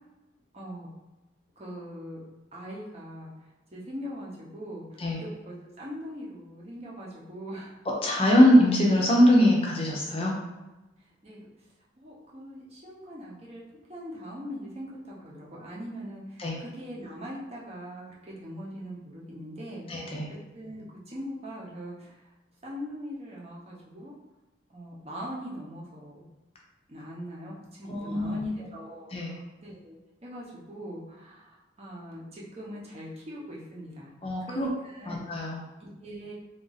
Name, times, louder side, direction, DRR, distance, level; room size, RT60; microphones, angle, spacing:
voice 1, 0.5-0.9 1.6-2.2 2.5-3.3 3.7-7.7 11.2-11.5 12.0-13.6 13.9-20.1 20.5-22.1 22.6-24.1 24.7-26.3 26.9-34.1 34.4-35.2 35.8-36.3, equal, 30° right, -5 dB, 0.8 m, -41 dB
voice 2, 8.0-10.4 16.4-16.6 19.9-20.3 27.9-28.5 29.1-29.3 34.2-34.7 35.1-35.6, equal, 30° left, -2 dB, 0.6 m, -22 dB
3.6 x 2.6 x 3.9 m, 1.1 s
head